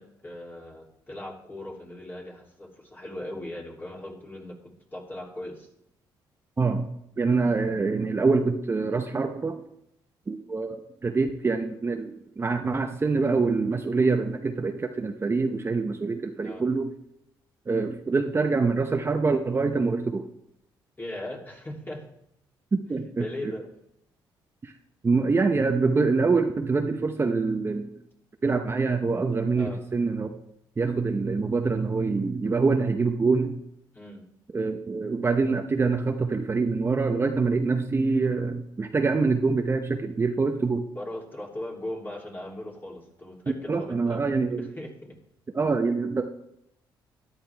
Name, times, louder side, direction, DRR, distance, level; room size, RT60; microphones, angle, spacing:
voice 1, 0.0-5.7 16.4-16.7 21.0-22.0 23.1-23.6 29.6-29.8 33.9-34.2 40.9-45.2, left 1 dB, 20° left, -1 dB, 3.2 m, -39 dB
voice 2, 6.6-6.9 7.2-9.6 10.3-16.9 17.7-20.2 22.7-23.5 24.6-24.7 25.0-27.9 28.4-30.3 30.8-33.6 34.5-40.9 43.7-44.7 45.5-46.2, right 4 dB, 30° right, 5 dB, 0.9 m, -25 dB
13.5 x 10.0 x 3.5 m, 0.76 s
cardioid pair, 85°, 9 cm